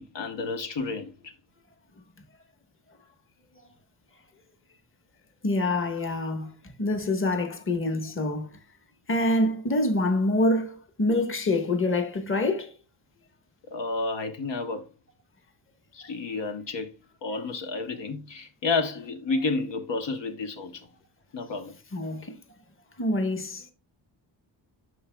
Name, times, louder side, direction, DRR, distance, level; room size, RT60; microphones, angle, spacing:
voice 1, 0.0-1.3 13.7-14.9 15.9-16.9 17.2-20.9 21.3-21.7, left 3 dB, 65° left, 1.0 m, -31 dB
voice 2, 5.4-6.5 6.8-8.5 9.1-12.7 21.9-22.4 23.0-23.6, left 2 dB, 25° left, 1.2 m, -26 dB
12.0 x 4.6 x 2.2 m
wide cardioid pair, 115°, 47 cm